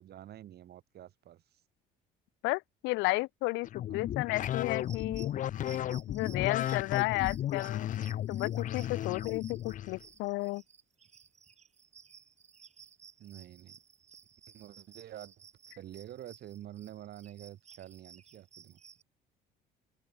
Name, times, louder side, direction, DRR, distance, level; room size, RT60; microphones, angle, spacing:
voice 1, 0.0-1.6 3.9-4.1 13.2-13.8 14.5-15.4 15.7-18.8, right 12 dB, 60° right, 5.3 m, -48 dB
voice 2, 2.4-5.3 6.1-7.9 8.3-10.6, left 23 dB, 80° left, 0.9 m, -33 dB
sound 1, 3.6-10.0, left 11 dB, 45° left, 0.5 m, -34 dB
sound 2, 4.7-19.0, right 7 dB, 40° right, 3.5 m, -56 dB
open air
cardioid pair, 100°, 19 cm